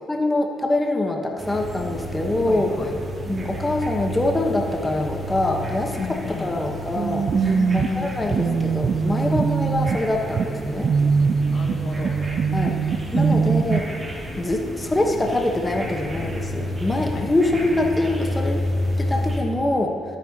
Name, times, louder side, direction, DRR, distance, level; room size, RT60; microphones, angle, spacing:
voice 1, 0.1-2.7 3.3-7.3 7.7-10.9 12.5-13.9 14.3-18.6 19.0-20.0, left 2 dB, 15° left, 2 dB, 0.9 m, -24 dB
sound 1, 1.4-19.4, equal, 30° right, 2.6 m, -31 dB
voice 2, 2.5-3.0 6.0-6.6 7.3-8.6 11.5-12.2 12.8-13.5 17.1-17.3, left 4 dB, 50° left, 3 dB, 1.0 m, -32 dB
sound 2, 7.0-13.8, right 6 dB, 50° right, 0.3 m, -22 dB
12.5 x 10.5 x 2.8 m, 2.5 s
cardioid pair, 90°, 0 cm